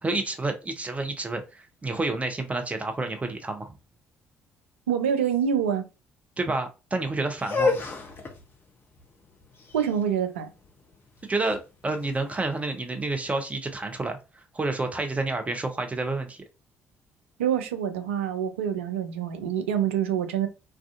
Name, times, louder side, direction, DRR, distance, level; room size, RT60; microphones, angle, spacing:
voice 1, 0.0-3.7 6.4-7.9 11.3-11.6 11.8-16.4, right 2 dB, 20° right, 0.6 m, -29 dB
voice 2, 4.9-5.8 9.7-10.5 17.4-20.5, right 8 dB, 75° right, 0.4 m, -26 dB
sound 1, 7.4-13.3, left 4 dB, 35° left, 0.6 m, -32 dB
2.4 x 2.2 x 2.5 m
figure-of-eight pair, 45°, 7 cm